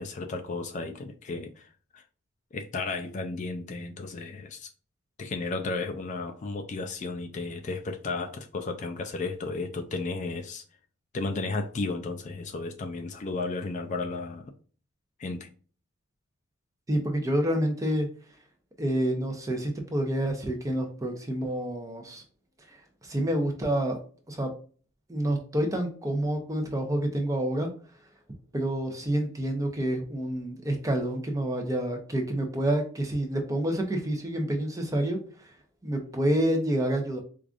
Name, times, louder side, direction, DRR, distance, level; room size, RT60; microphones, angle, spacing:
voice 1, 0.0-2.0 2.5-4.7 5.2-10.6 11.1-14.4 15.2-15.5, left 3 dB, 35° left, 0.3 m, -33 dB
voice 2, 16.9-18.1 18.8-22.2 23.0-24.0 24.3-24.5 25.1-27.7 28.5-35.5 35.8-37.2, right 1 dB, 15° right, 0.6 m, -28 dB
4.7 x 2.4 x 2.4 m
head